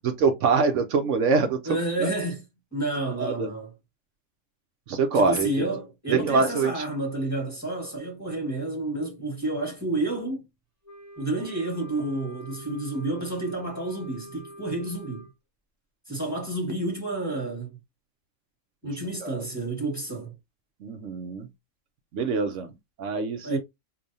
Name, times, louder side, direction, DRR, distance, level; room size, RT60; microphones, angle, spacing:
voice 1, 0.0-2.1 3.2-3.5 4.9-5.5 6.1-6.8 19.2-19.5 20.8-21.5 22.1-22.7 23.0-23.6, right 4 dB, 70° right, 1.0 m, -24 dB
voice 2, 1.6-2.4 2.7-3.7 5.1-10.4 11.2-15.3 16.1-17.8 18.8-20.3 23.4-23.6, right 2 dB, 15° left, 1.4 m, -30 dB
Wind instrument woodwind instrument, 10.8-15.3, right 1 dB, 15° right, 0.8 m, -45 dB
4.9 x 2.6 x 2.6 m
omnidirectional pair, 1.4 m